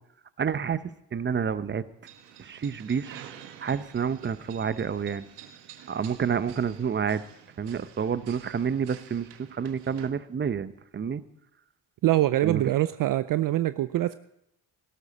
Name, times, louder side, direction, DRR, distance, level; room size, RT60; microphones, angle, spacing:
voice 1, 0.4-0.8 1.1-1.8 2.4-3.2 3.6-5.2 5.9-7.2 7.6-11.2 12.4-12.6, right 7 dB, 25° right, 14 dB, 0.8 m, -29 dB
sound 1, 2.0-10.1, right 10 dB, 80° right, 1.3 m, -49 dB
voice 2, 12.0-14.2, right 14 dB, 55° right, 14 dB, 0.5 m, -24 dB
17.0 x 12.5 x 4.2 m, 0.81 s
supercardioid pair, 75°, 41 cm